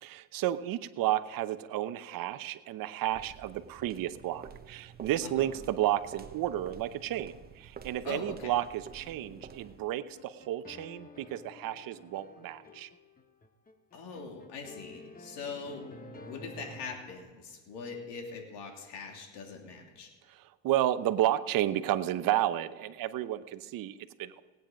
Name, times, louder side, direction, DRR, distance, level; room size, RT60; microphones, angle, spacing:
voice 1, 0.0-12.9 20.3-24.4, right 13 dB, 50° right, 12 dB, 0.9 m, -32 dB
sound 1, 3.1-9.9, right 6 dB, 20° right, 0.9 m, -50 dB
voice 2, 8.0-8.5 13.9-15.9 16.3-20.1, left 4 dB, 70° left, 1 dB, 3.0 m, -42 dB
sound 2, 9.0-17.2, left 2 dB, 20° left, 1.1 m, -51 dB
18.0 x 9.3 x 5.2 m, 1.4 s
supercardioid pair, 115°, 43 cm